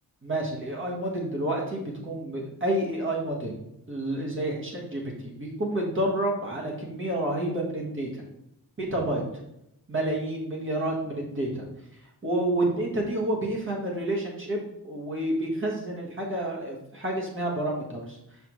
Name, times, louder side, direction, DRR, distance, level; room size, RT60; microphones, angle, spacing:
voice 1, 0.2-8.2 8.8-9.2 9.9-11.6 12.0-18.2, right 1 dB, 30° right, -2 dB, 1.2 m, -29 dB
5.8 x 5.8 x 3.0 m, 0.82 s
wide cardioid pair, 160°, 41 cm